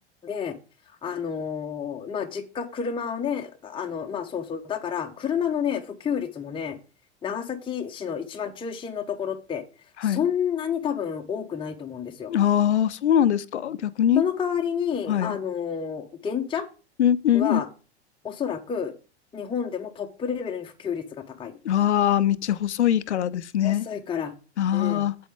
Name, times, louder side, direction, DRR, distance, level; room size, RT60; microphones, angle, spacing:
voice 1, 0.2-0.6 1.0-6.8 7.2-9.6 10.0-12.3 14.1-16.7 17.3-17.7 18.2-18.9 19.3-21.5 23.6-24.3 24.7-25.0, left 7 dB, 15° left, 0.9 m, -30 dB
voice 2, 12.3-14.2 15.1-15.4 17.0-17.6 21.6-23.9 24.6-25.1, left 10 dB, 75° left, 0.6 m, -22 dB
8.3 x 7.7 x 3.7 m
figure-of-eight pair, 85°, 34 cm